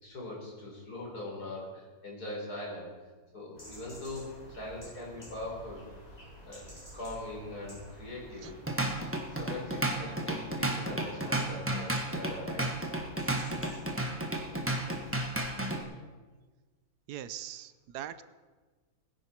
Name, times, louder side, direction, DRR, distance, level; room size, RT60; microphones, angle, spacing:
voice 1, 0.0-2.9 3.3-5.9 6.4-8.6 9.3-12.8, left 2 dB, 75° left, -3 dB, 4.6 m, -41 dB
sound 1, 3.5-15.5, equal, 25° left, 5.6 m, -51 dB
Drum kit / Drum, 8.4-15.8, right 1 dB, 10° right, 1.2 m, -32 dB
voice 2, 17.1-18.2, right 11 dB, 80° right, 14 dB, 1.2 m, -41 dB
20.0 x 10.5 x 4.4 m, 1.3 s
omnidirectional pair, 1.7 m